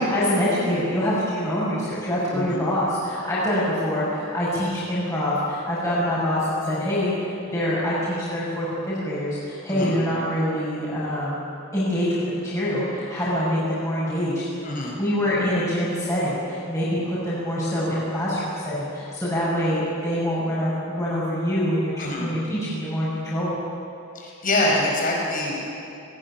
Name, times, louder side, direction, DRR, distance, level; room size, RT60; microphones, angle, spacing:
voice 1, 0.0-11.4 11.7-14.5 14.9-23.6, equal, 15° left, -9 dB, 5.9 m, -25 dB
voice 2, 2.3-2.6 9.7-9.9 14.6-15.0 22.0-22.3 24.1-25.6, left 1 dB, 45° left, -2 dB, 5.8 m, -25 dB
20.0 x 18.5 x 9.9 m, 2.7 s
head